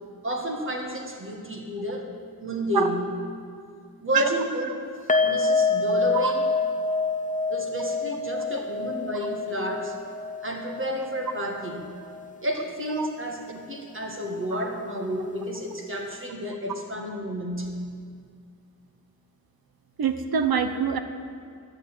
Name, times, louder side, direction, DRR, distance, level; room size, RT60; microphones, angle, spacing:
voice 1, 0.2-2.1 2.4-3.0 4.0-4.7 5.2-6.4 7.5-10.0 10.4-11.9 12.4-17.7, equal, 35° right, 1 dB, 1.6 m, -31 dB
sound 1, 5.1-12.3 12.6-12.7 13.1-13.2, left 3 dB, 20° left, 0.6 m, -27 dB
voice 2, 20.0-21.0, right 7 dB, 80° right, 9 dB, 0.8 m, -24 dB
11.0 x 6.8 x 8.9 m, 2.2 s
wide cardioid pair, 130°, 36 cm